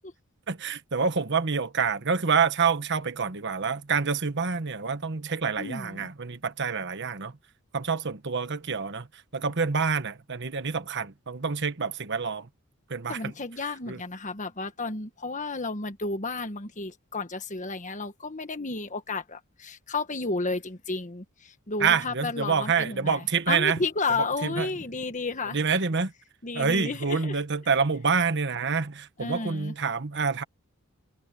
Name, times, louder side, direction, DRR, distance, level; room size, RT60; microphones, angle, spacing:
voice 1, 0.5-7.3 7.7-9.1 9.3-12.5 12.9-13.3 13.9-14.0 21.8-23.8 24.4-24.7 25.5-26.1 26.5-30.4, right 5 dB, 50° right, 1.2 m, -27 dB
voice 2, 5.6-6.1 13.1-25.6 26.4-27.4 29.2-29.7, left 3 dB, 35° left, 1.5 m, -32 dB
head